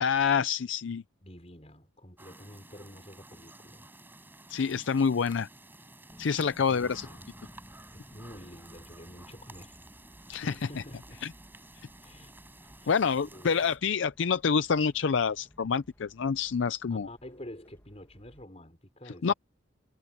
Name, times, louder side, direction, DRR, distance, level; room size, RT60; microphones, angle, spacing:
voice 1, 0.0-1.0 4.5-5.5 6.2-7.1 10.3-10.8 11.2-11.3 12.9-17.1 19.2-19.3, left 6 dB, 65° left, 0.5 m, -27 dB
voice 2, 1.2-3.9 6.6-7.3 7.9-9.8 10.4-11.2 12.0-12.3 12.8-13.0 13.3-13.6 16.9-19.3, left 1 dB, 30° left, 5.1 m, -48 dB
sound 1, 2.2-13.8, right 2 dB, 10° right, 5.1 m, -52 dB
sound 2, 6.1-18.5, equal, 10° left, 1.4 m, -57 dB
head